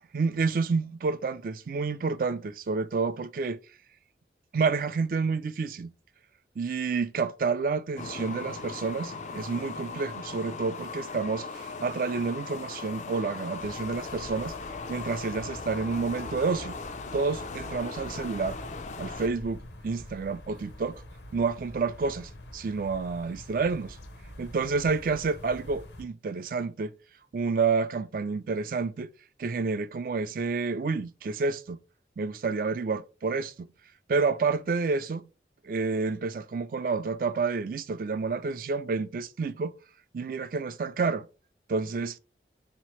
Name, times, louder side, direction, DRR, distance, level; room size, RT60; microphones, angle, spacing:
voice 1, 0.1-3.6 4.5-5.9 6.6-14.5 14.9-16.8 17.1-18.6 19.0-21.0 21.3-24.0 24.4-26.9 27.3-29.1 29.4-31.8 32.2-33.7 34.1-35.3 35.6-39.7 40.1-41.3 41.7-42.2, right 4 dB, 50° right, 0.3 m, -29 dB
sound 1, 8.0-19.3, left 4 dB, 40° left, 0.3 m, -39 dB
sound 2, 13.6-26.0, left 1 dB, 75° left, 0.7 m, -46 dB
4.1 x 2.9 x 3.0 m
head